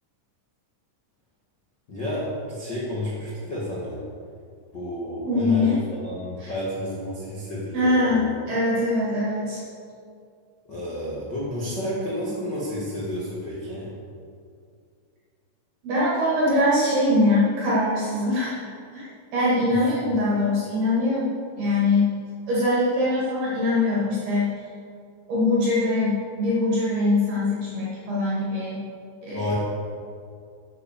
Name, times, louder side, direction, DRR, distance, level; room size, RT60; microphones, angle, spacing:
voice 1, 1.9-4.0 4.7-8.3 10.7-13.9 29.3-29.5, left 1 dB, 75° left, -7 dB, 1.0 m, -31 dB
voice 2, 5.2-5.8 6.4-6.5 7.7-9.6 15.8-18.6 18.9-21.3 21.6-22.1 22.5-24.5 25.3-28.9 29.2-29.4, left 2 dB, 55° right, -8 dB, 4.1 m, -22 dB
sound 1, 16.5-18.9, right 1 dB, 60° left, 3.8 m, -38 dB
9.7 x 8.4 x 6.9 m, 2.3 s
omnidirectional pair, 5.7 m